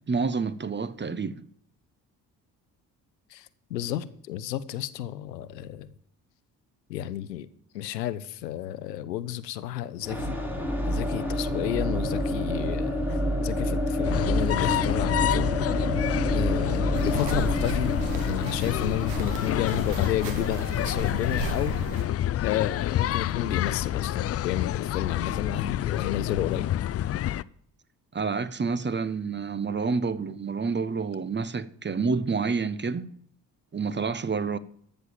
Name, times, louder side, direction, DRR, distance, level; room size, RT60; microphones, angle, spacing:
voice 1, 0.1-1.4 28.1-33.1 33.7-34.6, right 4 dB, 25° right, 0.9 m, -28 dB
voice 2, 3.3-5.9 6.9-7.5 7.7-10.4 10.9-15.5 16.3-18.0 18.2-21.8 22.4-26.7, left 12 dB, 85° left, 0.6 m, -31 dB
sound 1, 10.0-21.8, equal, 5° right, 3.3 m, -29 dB
sound 2, 14.0-27.4, left 12 dB, 35° left, 0.4 m, -28 dB
sound 3, 16.9-22.1, right 4 dB, 75° right, 1.6 m, -35 dB
13.5 x 6.7 x 7.3 m
figure-of-eight pair, 45°, 48 cm